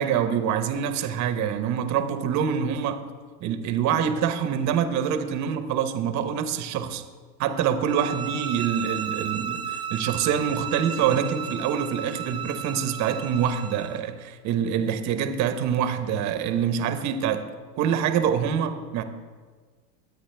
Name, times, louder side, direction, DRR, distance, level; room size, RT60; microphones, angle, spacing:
voice 1, 0.0-3.0 3.4-7.0 7.4-17.4 17.8-19.0, right 8 dB, 35° right, 9 dB, 1.0 m, -25 dB
sound 1, 7.8-14.0, right 8 dB, 10° right, 0.9 m, -34 dB
21.5 x 8.6 x 3.4 m, 1.5 s
supercardioid pair, 130°, 48 cm